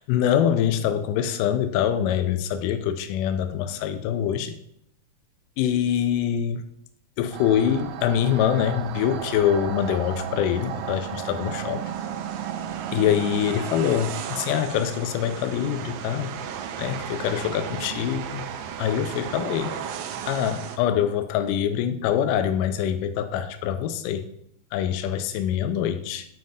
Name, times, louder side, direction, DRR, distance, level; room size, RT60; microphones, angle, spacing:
voice 1, 0.0-4.6 5.6-6.6 7.2-11.9 12.9-16.4 16.8-18.5 18.8-19.7 20.3-24.2 24.7-26.3, left 9 dB, 80° left, 9 dB, 2.1 m, -24 dB
sound 1, 7.3-20.8, right 9 dB, 80° right, 1.8 m, -34 dB
9.3 x 3.2 x 5.2 m, 0.72 s
omnidirectional pair, 3.8 m